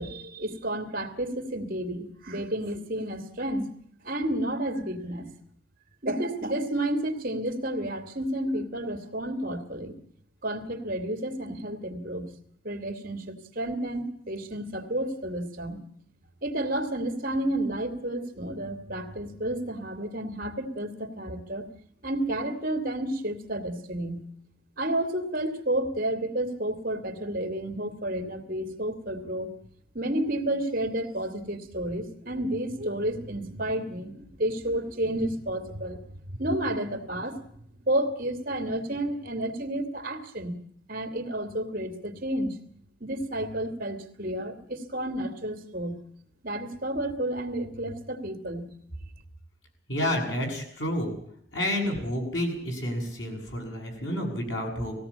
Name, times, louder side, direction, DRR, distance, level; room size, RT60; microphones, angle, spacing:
voice 1, 0.0-3.7 4.0-5.4 6.0-9.9 10.4-12.3 12.6-15.8 16.4-21.7 22.0-24.2 24.8-29.5 29.9-36.0 36.3-37.4 37.9-40.6 40.9-42.6 43.0-46.0 46.4-48.7, right 1 dB, 50° right, 7 dB, 2.5 m, -31 dB
voice 2, 49.9-51.1 51.5-54.9, left 1 dB, 90° left, 2 dB, 7.5 m, -30 dB
19.5 x 16.5 x 8.6 m, 0.66 s
head